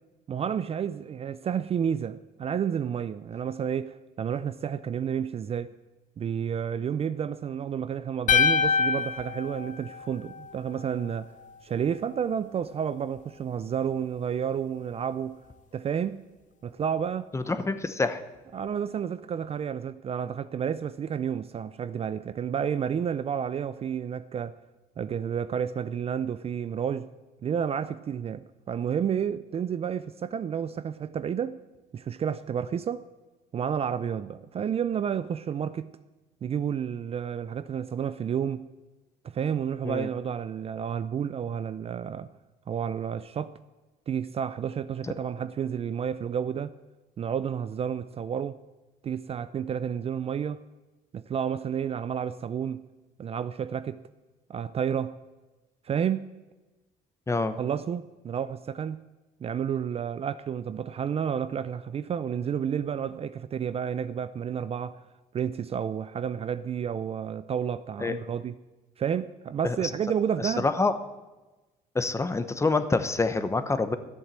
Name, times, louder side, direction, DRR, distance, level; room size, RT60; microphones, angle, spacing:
voice 1, 0.3-5.7 6.2-11.3 11.6-15.4 15.7-16.3 16.6-17.3 18.5-24.6 25.0-27.1 27.4-31.6 31.9-33.1 33.5-35.9 36.4-38.7 39.2-42.3 42.7-43.6 44.1-46.7 47.2-48.6 49.0-50.6 51.1-52.9 53.2-54.0 54.5-55.2 55.8-56.3 57.6-59.0 59.4-65.0 65.3-68.5 69.0-70.7, right 8 dB, 35° right, 0.4 m, -30 dB
sound 1, 8.3-10.5, left 6 dB, 50° left, 0.7 m, -25 dB
voice 2, 17.3-18.2 39.8-40.1 57.3-57.6 68.0-68.1 69.6-69.8 70.4-70.9 71.9-74.0, left 3 dB, 15° left, 0.9 m, -26 dB
13.0 x 8.1 x 7.4 m
cardioid pair, 110°, 17 cm